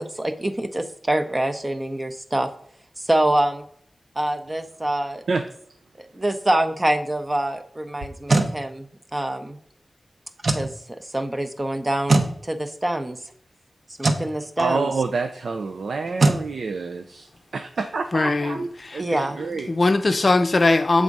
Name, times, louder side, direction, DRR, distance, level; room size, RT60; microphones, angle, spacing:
voice 1, 0.0-2.5 3.0-3.6 4.2-5.2 6.0-8.9 9.1-9.6 10.5-10.7 11.0-13.2 14.0-14.9 19.0-19.4, right 1 dB, 20° right, 0.6 m, -25 dB
sound 1, 8.0-8.5 10.4-10.7 12.1-12.3 14.0-14.3 16.2-16.4, right 2 dB, 55° right, 0.8 m, -19 dB
voice 2, 14.6-19.7, right 4 dB, 80° right, 0.4 m, -28 dB
voice 3, 18.1-19.0 19.7-21.0, left 2 dB, 45° left, 0.6 m, -20 dB
7.4 x 3.6 x 5.2 m
wide cardioid pair, 110°, 0 cm